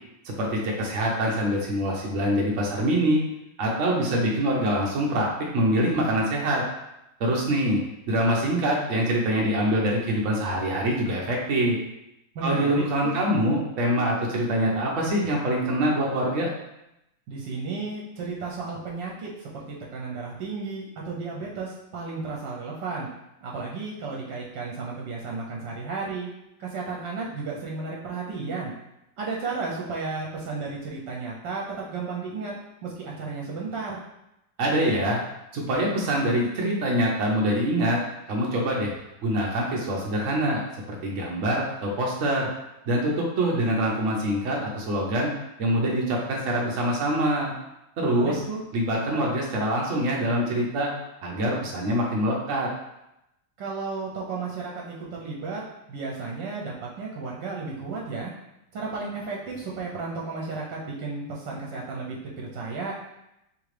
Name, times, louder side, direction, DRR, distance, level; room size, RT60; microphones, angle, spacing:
voice 1, 0.2-3.2 3.6-5.3 5.5-6.6 7.2-7.8 8.1-11.8 12.4-16.5 34.6-35.2 35.5-38.0 38.3-38.9 39.2-40.6 40.9-42.5 42.9-45.3 45.6-47.5 48.0-48.4 48.7-50.9 51.2-52.7, right 1 dB, 60° right, -2 dB, 0.9 m, -24 dB
voice 2, 12.3-13.1 17.3-23.1 23.4-26.3 26.6-28.7 29.2-32.5 32.8-34.0 48.0-48.6 53.6-55.6 55.9-58.3 58.7-62.9, right 4 dB, 75° right, -3 dB, 1.3 m, -33 dB
3.7 x 3.3 x 3.2 m, 0.87 s
omnidirectional pair, 2.0 m